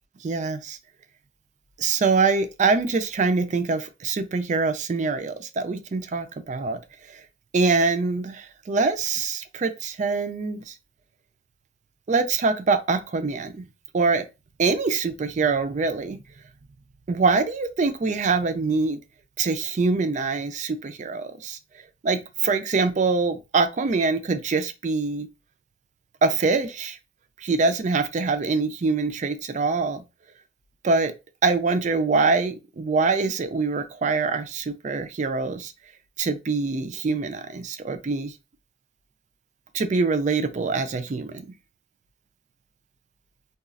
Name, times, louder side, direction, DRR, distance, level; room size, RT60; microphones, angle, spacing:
voice 1, 0.2-0.8 1.8-6.8 7.1-7.2 7.5-10.7 12.1-13.7 13.9-14.3 14.6-16.2 17.1-19.0 19.4-21.6 22.0-25.3 26.2-27.0 27.4-30.0 30.8-31.2 31.4-35.7 36.2-38.3 39.7-41.5, right 4 dB, 40° right, 0.4 m, -24 dB
4.0 x 2.3 x 2.4 m
head